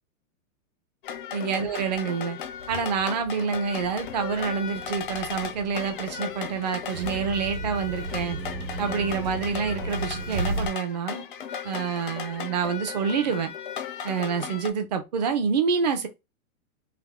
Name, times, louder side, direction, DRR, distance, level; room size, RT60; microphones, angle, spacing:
sound 1, 1.0-14.7, left 7 dB, 40° left, 0.4 m, -36 dB
voice 1, 1.3-2.4 2.7-8.4 8.8-11.2 11.6-13.5 14.0-16.1, right 6 dB, 30° right, 0.5 m, -27 dB
sound 2, 3.6-10.7, right 2 dB, 80° right, 1.2 m, -35 dB
3.5 x 2.6 x 3.5 m
supercardioid pair, 175°, 42 cm